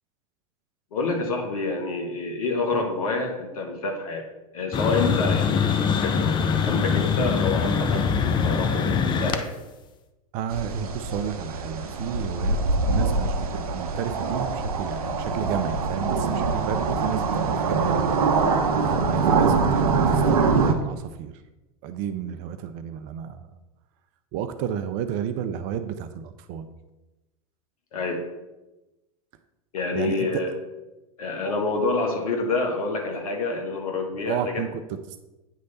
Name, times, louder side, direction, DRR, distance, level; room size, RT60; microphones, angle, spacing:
voice 1, 0.9-4.2 4.5-9.5 27.9-28.2 29.7-30.5 31.2-34.6, left 3 dB, 70° left, 3 dB, 1.3 m, -28 dB
sound 1, 4.7-9.4, left 6 dB, 25° left, 0.5 m, -23 dB
voice 2, 10.3-12.6 12.9-18.3 18.8-21.3 21.8-23.5 24.3-26.7 29.9-30.4 34.2-35.2, right 9 dB, 45° right, 9 dB, 0.5 m, -31 dB
sound 2, 10.5-20.7, right 4 dB, 75° right, 0.7 m, -24 dB
9.1 x 3.2 x 4.0 m, 1.0 s
hypercardioid pair, 95°, 19 cm